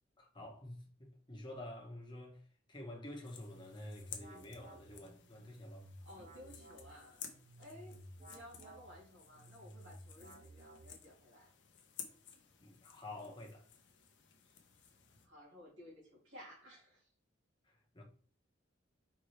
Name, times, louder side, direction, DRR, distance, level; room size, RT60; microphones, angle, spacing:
voice 1, 0.2-2.4 2.7-5.9 12.6-13.7 17.6-18.0, left 1 dB, 25° left, 1.0 m, -49 dB
sound 1, 3.2-15.3, left 8 dB, 60° left, 0.7 m, -55 dB
sound 2, 3.2-11.3, right 1 dB, 30° right, 0.6 m, -56 dB
voice 2, 6.0-7.3 7.6-11.5 15.2-17.1, left 1 dB, 70° right, 2.4 m, -56 dB
4.4 x 3.5 x 3.2 m
head